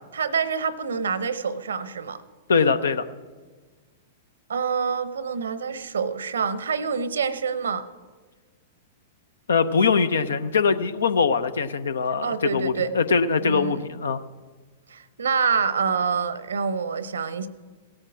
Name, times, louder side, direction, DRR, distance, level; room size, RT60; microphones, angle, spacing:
voice 1, 0.1-2.2 4.5-7.9 12.2-12.9 13.4-13.8 14.9-17.5, right 6 dB, 75° right, 15 dB, 0.8 m, -26 dB
voice 2, 2.5-3.1 9.5-14.2, left 5 dB, 75° left, 12 dB, 0.7 m, -22 dB
17.0 x 8.7 x 6.1 m, 1.4 s
figure-of-eight pair, 105°, 0 cm